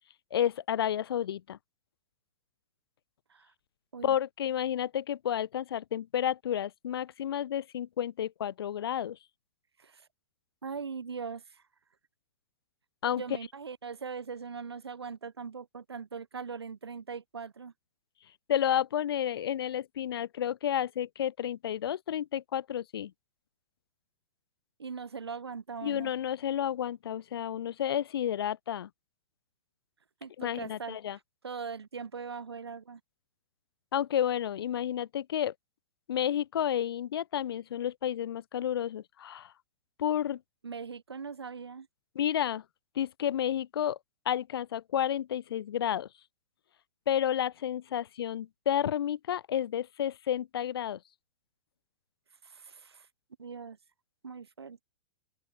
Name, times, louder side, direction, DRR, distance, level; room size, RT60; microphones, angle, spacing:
voice 1, 0.3-1.6 4.0-9.2 13.0-13.2 18.5-23.1 25.8-28.9 30.4-31.2 33.9-35.5 36.1-39.5 40.0-40.4 42.2-42.6 43.0-44.0 44.3-46.1 47.1-51.0, left 10 dB, 70° left, 0.4 m, -31 dB
voice 2, 10.6-11.6 13.1-17.7 24.8-26.1 30.2-33.0 40.6-41.9 52.4-53.1 53.4-53.8 54.2-54.8, right 5 dB, 85° right, 1.0 m, -41 dB
open air
hypercardioid pair, 115°, 13 cm